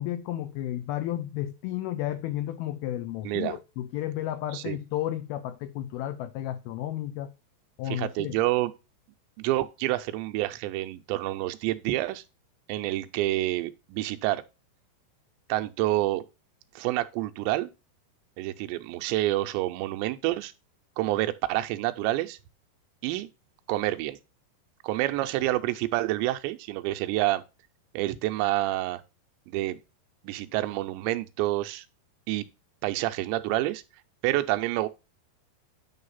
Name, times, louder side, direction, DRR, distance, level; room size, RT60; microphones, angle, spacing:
voice 1, 0.0-7.3 7.8-8.4, left 13 dB, 90° left, 2.1 m, -32 dB
voice 2, 3.2-3.6 4.5-4.8 7.9-8.7 9.4-12.2 12.7-14.4 15.5-16.2 16.8-17.7 18.4-20.5 21.0-22.4 23.0-23.3 23.7-24.2 24.8-27.4 27.9-29.0 29.5-29.8 30.2-31.9 32.3-32.5 32.8-33.8 34.2-34.9, right 16 dB, 85° right, 2.9 m, -28 dB
9.4 x 3.2 x 5.5 m
omnidirectional pair, 5.1 m